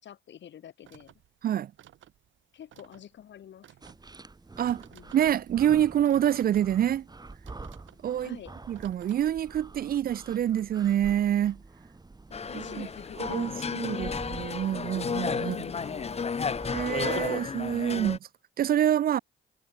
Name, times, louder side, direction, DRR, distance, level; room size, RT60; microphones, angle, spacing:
voice 1, 0.0-1.1 2.5-3.8 4.9-5.2 8.1-8.6 12.5-14.2 15.4-16.4, left 10 dB, 65° left, 6.2 m, -47 dB
sound 1, 0.8-9.2, right 12 dB, 75° right, 2.9 m, -57 dB
sound 2, 3.8-17.3, right 3 dB, 20° right, 3.5 m, -47 dB
voice 2, 5.1-7.0 8.0-8.3 8.7-11.6 12.5-12.9 13.3-15.6 16.7-18.2 18.6-19.2, right 10 dB, 50° right, 0.4 m, -26 dB
sound 3, 12.3-18.2, left 5 dB, 30° left, 1.1 m, -33 dB
cardioid pair, 90°, 20 cm